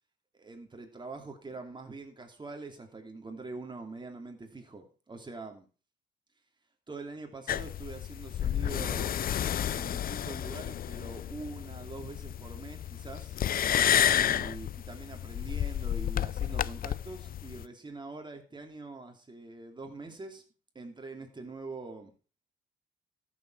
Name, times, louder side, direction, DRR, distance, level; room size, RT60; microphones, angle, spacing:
voice 1, 0.4-5.7 6.9-9.2 9.7-13.4 14.1-20.4 20.7-22.1, right 3 dB, 25° right, 4 dB, 3.0 m, -44 dB
sound 1, 7.5-17.6, left 10 dB, 45° left, 0.5 m, -31 dB
13.5 x 7.3 x 4.8 m, 0.36 s
cardioid pair, 90°, 20 cm